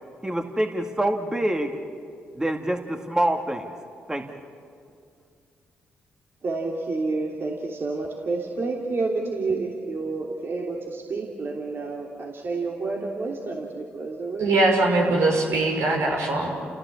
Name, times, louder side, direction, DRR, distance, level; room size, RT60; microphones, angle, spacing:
voice 1, 0.2-1.7 2.3-3.7 4.1-4.3, right 1 dB, 15° right, 4 dB, 2.1 m, -25 dB
voice 2, 6.4-14.5, right 3 dB, 50° right, -1 dB, 3.2 m, -29 dB
voice 3, 14.4-16.5, right 2 dB, 75° right, 0 dB, 5.9 m, -21 dB
30.0 x 16.5 x 8.6 m, 2.3 s
supercardioid pair, 50°, 5 cm